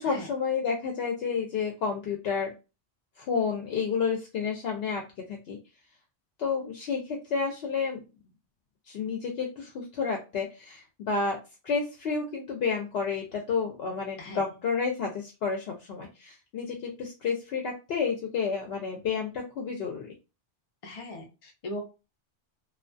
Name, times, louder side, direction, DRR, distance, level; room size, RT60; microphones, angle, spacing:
voice 1, 0.0-2.5 3.2-5.0 5.3-5.6 6.4-8.0 8.9-11.4 11.6-20.1, left 5 dB, 65° left, 1 dB, 0.8 m, -30 dB
voice 2, 20.8-21.8, left 1 dB, 45° left, 1 dB, 0.4 m, -39 dB
2.3 x 2.2 x 2.5 m, 0.29 s
omnidirectional pair, 1.2 m